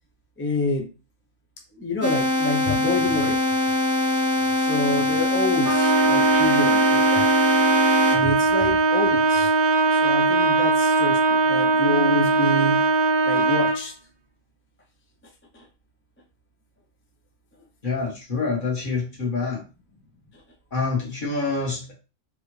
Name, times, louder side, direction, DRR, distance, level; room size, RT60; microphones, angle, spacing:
voice 1, 0.4-0.9 1.7-3.4 4.6-7.3 8.1-9.6 9.8-12.8 13.3-13.9 15.5-15.7, left 1 dB, 15° left, 1 dB, 0.4 m, -27 dB
sound 1, 2.0-8.2, left 2 dB, 15° right, 0.9 m, -23 dB
Trumpet, 5.6-13.8, right 4 dB, 55° right, 0.8 m, -20 dB
voice 2, 17.8-19.6 20.7-21.9, left 4 dB, 45° left, -2 dB, 1.5 m, -26 dB
4.8 x 2.5 x 3.1 m, 0.31 s
omnidirectional pair, 1.2 m